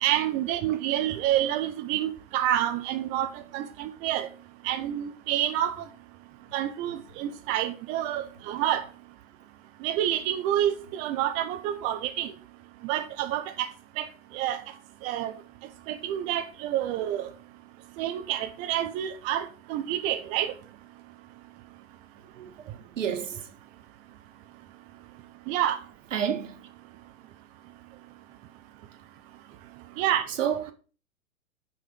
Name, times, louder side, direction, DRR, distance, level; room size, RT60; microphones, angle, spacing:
voice 1, 0.0-4.3 4.6-5.7 6.5-8.8 9.8-12.3 12.8-13.7 14.0-14.1 14.3-14.6 15.0-15.3 15.9-17.3 18.0-20.5 25.5-25.8 30.0-30.2, right 12 dB, 20° right, 0.5 m, -28 dB
voice 2, 22.3-23.5 26.1-26.7 30.3-30.7, right 8 dB, 65° right, 1.7 m, -31 dB
6.3 x 5.5 x 6.1 m
figure-of-eight pair, 110°, 41 cm